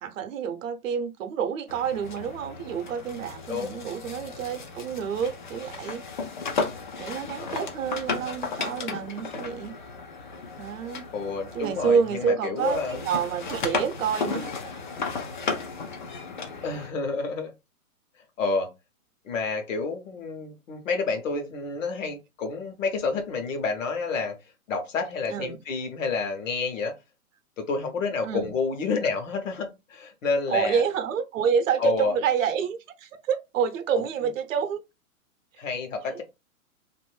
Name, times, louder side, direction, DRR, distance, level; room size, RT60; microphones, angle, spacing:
voice 1, 0.0-6.0 7.0-9.7 10.6-11.0 11.5-14.7 25.3-25.6 28.2-28.5 30.5-34.8 36.0-36.2, right 7 dB, 60° right, 0.7 m, -28 dB
sound 1, 1.7-12.3 12.6-16.9, left 4 dB, 35° left, 0.4 m, -34 dB
voice 2, 3.5-3.9 7.4-7.7 11.1-13.0 16.6-17.5 18.4-18.7 19.3-24.4 24.7-26.9 27.6-30.8 31.8-32.1 35.6-36.2, left 4 dB, 60° left, 1.0 m, -29 dB
2.6 x 2.5 x 3.2 m
hypercardioid pair, 150°, 44 cm